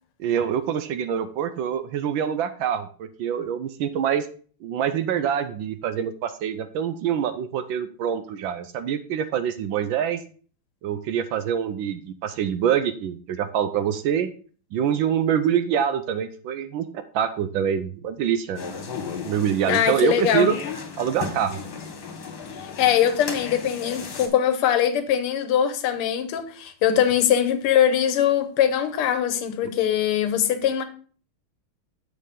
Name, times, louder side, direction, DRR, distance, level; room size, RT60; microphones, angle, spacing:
voice 1, 0.2-4.3 4.6-10.2 10.8-14.3 14.7-18.6 19.2-20.5 21.0-21.6, right 9 dB, 70° right, 1.2 m, -25 dB
sound 1, 18.6-24.3, left 5 dB, 65° left, 2.2 m, -35 dB
voice 2, 19.7-20.5 22.8-30.8, left 9 dB, 85° left, 1.7 m, -22 dB
7.2 x 6.6 x 3.6 m
omnidirectional pair, 2.4 m